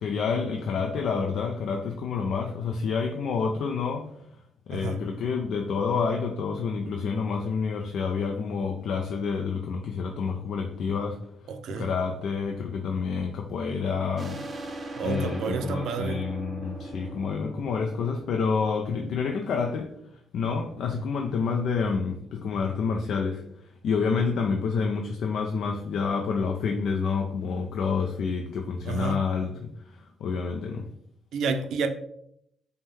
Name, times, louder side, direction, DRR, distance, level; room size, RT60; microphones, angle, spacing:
voice 1, 0.0-4.1 4.7-11.3 11.7-14.4 15.0-19.9 20.3-23.4 23.8-30.9, left 5 dB, 70° left, 3 dB, 0.4 m, -28 dB
voice 2, 11.5-11.9 15.0-16.2 28.9-29.2 31.3-31.9, right 5 dB, 75° right, 8 dB, 0.4 m, -30 dB
sound 1, 14.2-19.5, right 2 dB, 35° right, 0.6 m, -40 dB
5.4 x 2.1 x 3.3 m, 0.72 s
cardioid pair, 90°, 0 cm